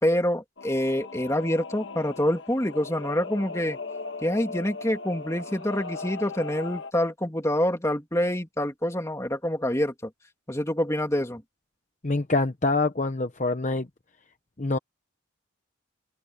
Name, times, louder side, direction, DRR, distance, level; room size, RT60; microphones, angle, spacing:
voice 1, 0.0-3.8 4.2-10.1 10.5-11.4, left 1 dB, 15° left, 2.9 m, -26 dB
Singing / Musical instrument, 0.6-6.9, left 3 dB, 60° left, 1.6 m, -38 dB
voice 2, 12.0-13.9 14.6-14.8, left 3 dB, 35° left, 0.9 m, -25 dB
open air
head